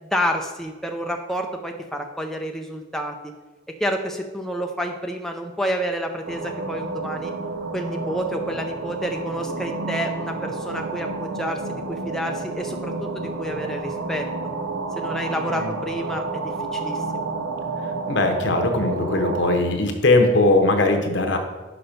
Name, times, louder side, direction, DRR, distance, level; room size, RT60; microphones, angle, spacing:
voice 1, 0.0-3.3 3.8-7.3 7.7-14.3 15.0-17.3, equal, ahead, 3 dB, 0.4 m, -29 dB
sound 1, 6.2-19.6, right 3 dB, 90° right, 0.8 m, -30 dB
voice 2, 18.1-21.4, left 2 dB, 65° left, 4 dB, 1.0 m, -20 dB
5.9 x 5.3 x 5.2 m, 1.2 s
head